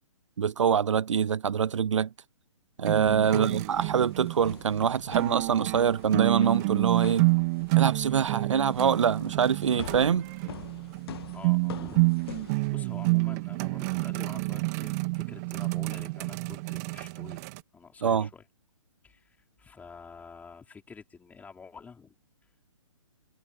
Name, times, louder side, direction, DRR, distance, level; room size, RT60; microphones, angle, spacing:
voice 1, 0.4-2.1 2.8-7.3 7.8-10.3 18.0-18.3, right 7 dB, 65° right, 0.6 m, -25 dB
sound 1, 2.8-17.6, right 26 dB, 30° right, 2.0 m, -29 dB
sound 2, 2.9-13.1, left 10 dB, 50° left, 1.6 m, -46 dB
voice 2, 3.3-3.9 11.3-18.4 19.0-22.1, left 5 dB, 10° left, 5.0 m, -48 dB
figure-of-eight pair, 130°, 17 cm